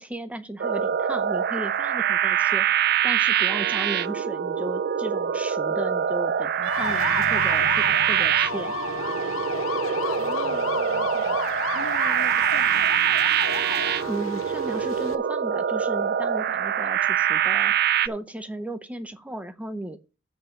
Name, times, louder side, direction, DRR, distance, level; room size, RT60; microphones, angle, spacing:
voice 1, 0.0-2.7 3.0-8.7 14.1-17.7 18.0-20.0, right 1 dB, 5° right, 0.6 m, -35 dB
sound 1, 0.6-18.1, right 9 dB, 50° right, 0.3 m, -24 dB
sound 2, 6.6-15.1, left 7 dB, 75° left, 0.5 m, -32 dB
Wind instrument woodwind instrument, 6.6-10.5, right 6 dB, 70° right, 0.7 m, -37 dB
voice 2, 10.2-13.3, left 1 dB, 50° left, 1.2 m, -42 dB
7.9 x 5.4 x 6.7 m
head